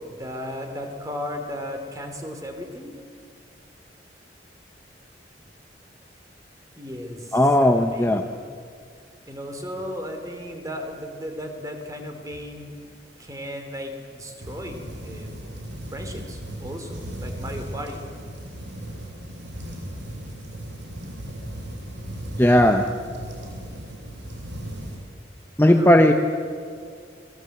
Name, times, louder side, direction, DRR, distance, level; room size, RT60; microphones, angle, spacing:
voice 1, 0.0-3.0 6.7-8.2 9.3-12.8 13.2-15.3 15.9-18.1 25.6-26.1, equal, 20° right, 5 dB, 2.9 m, -35 dB
voice 2, 7.3-8.2 22.4-22.8 25.6-26.1, left 1 dB, 10° left, 5 dB, 0.8 m, -16 dB
sound 1, 14.4-25.0, right 1 dB, 75° right, 6.3 m, -36 dB
26.5 x 19.0 x 7.9 m, 2.2 s
head